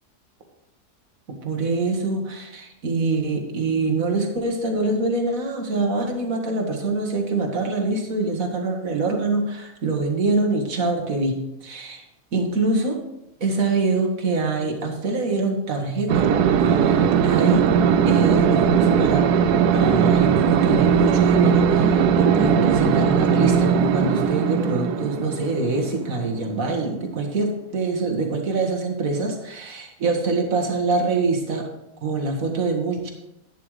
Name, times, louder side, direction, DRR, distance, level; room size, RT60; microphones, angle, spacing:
voice 1, 1.3-12.1 12.3-13.0 13.4-16.3 16.6-17.7 18.1-19.3 19.7-31.7 32.0-33.1, right 3 dB, 60° right, 2 dB, 2.1 m, -24 dB
sound 1, 16.1-27.2, right 7 dB, 90° right, 1.2 m, -19 dB
11.0 x 11.0 x 3.3 m, 0.86 s
omnidirectional pair, 1.6 m